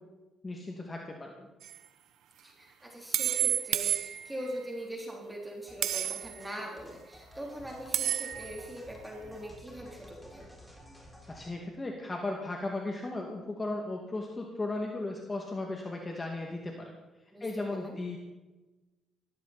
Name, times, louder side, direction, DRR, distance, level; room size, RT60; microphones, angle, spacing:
voice 1, 0.4-1.5 11.3-16.9 17.4-18.2, left 2 dB, 25° left, 1 dB, 2.4 m, -36 dB
sound 1, 1.6-1.8 3.1-4.6 5.8-6.4 7.9-8.6, right 11 dB, 80° right, 1.0 m, -30 dB
voice 2, 2.4-10.7 17.3-17.9, equal, 10° right, -1 dB, 3.7 m, -42 dB
sound 2, 5.7-11.5, equal, 5° left, 5.2 m, -53 dB
19.0 x 15.5 x 4.4 m, 1.1 s
cardioid pair, 90°, 0 cm